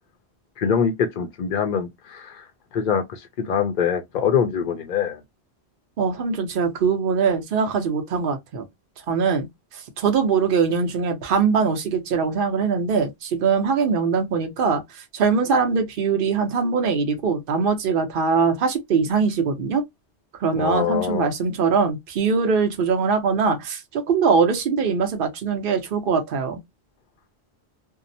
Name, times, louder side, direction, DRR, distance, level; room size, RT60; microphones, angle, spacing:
voice 1, 0.6-2.4 2.7-5.2 20.6-21.3, left 7 dB, 55° left, 0.5 m, -24 dB
voice 2, 6.0-8.6 9.1-9.5 10.0-19.8 20.4-26.6, right 5 dB, 55° right, 0.8 m, -22 dB
2.7 x 2.0 x 2.6 m
omnidirectional pair, 1.1 m